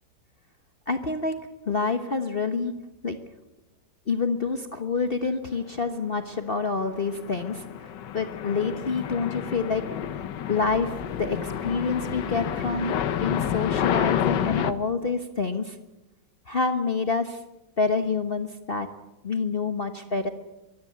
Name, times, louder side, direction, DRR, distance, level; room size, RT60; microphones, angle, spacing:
voice 1, 0.9-1.4 1.7-2.7 3.0-3.2 4.1-10.1 10.5-15.8 16.5-17.4 17.8-18.9 19.2-20.3, left 4 dB, 35° left, 8 dB, 1.2 m, -27 dB
sound 1, 6.9-14.7, left 9 dB, 80° left, 1.6 m, -29 dB
sound 2, 8.8-9.4 10.2-10.3 10.6-14.8, left 1 dB, 15° right, 7.9 m, -46 dB
23.0 x 16.0 x 9.5 m, 0.98 s
omnidirectional pair, 1.9 m